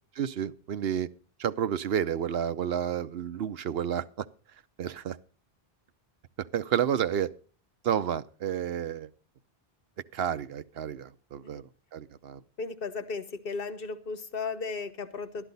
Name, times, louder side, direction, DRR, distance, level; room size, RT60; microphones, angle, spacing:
voice 1, 0.2-1.1 1.4-4.3 4.8-5.2 6.4-7.3 7.8-9.1 10.1-11.6 11.9-12.4, right 9 dB, 70° right, 0.9 m, -30 dB
voice 2, 12.6-15.5, left 4 dB, 65° left, 1.2 m, -35 dB
12.5 x 12.0 x 4.0 m
omnidirectional pair, 1.0 m